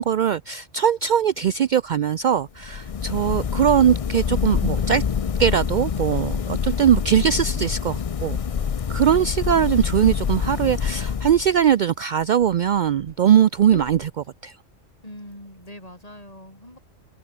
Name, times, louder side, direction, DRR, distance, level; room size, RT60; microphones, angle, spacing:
voice 1, 0.0-5.0 5.4-8.4 8.9-14.6, right 9 dB, 70° right, 0.4 m, -20 dB
sound 1, 2.6-11.7, left 7 dB, 50° left, 0.4 m, -26 dB
sound 2, 11.3-14.5 15.0-15.7, left 6 dB, 65° left, 1.7 m, -45 dB
voice 2, 15.0-16.8, left 1 dB, 30° left, 7.6 m, -42 dB
open air
omnidirectional pair, 1.3 m